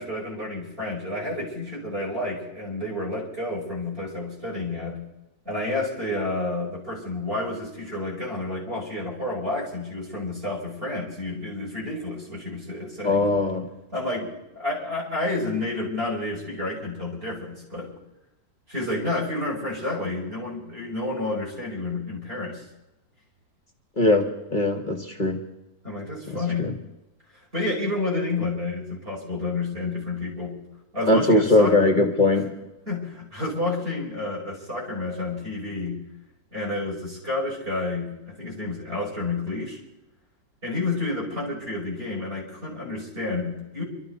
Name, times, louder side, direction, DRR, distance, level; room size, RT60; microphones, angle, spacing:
voice 1, 0.0-5.0 5.4-13.3 13.9-17.9 18.7-22.6 25.8-26.7 27.5-30.6 30.9-31.8 32.9-36.0 36.5-39.8 40.6-43.8, left 2 dB, 30° right, -4 dB, 5.6 m, -30 dB
voice 2, 13.0-13.7 24.0-25.4 26.3-26.7 31.1-32.5, left 2 dB, 30° left, 3 dB, 1.4 m, -21 dB
26.0 x 13.0 x 4.0 m, 0.99 s
omnidirectional pair, 1.9 m